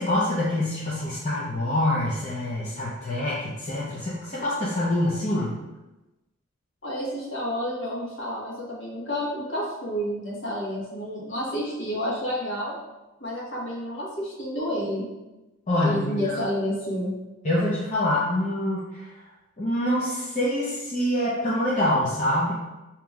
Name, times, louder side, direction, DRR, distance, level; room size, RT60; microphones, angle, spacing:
voice 1, 0.0-5.5 15.7-16.4 17.4-19.2 19.6-22.5, left 1 dB, 35° left, -8 dB, 0.7 m, -25 dB
voice 2, 6.8-12.7 13.2-15.1 15.8-17.1, equal, 55° left, -6 dB, 1.4 m, -30 dB
6.8 x 2.9 x 2.4 m, 1.0 s
head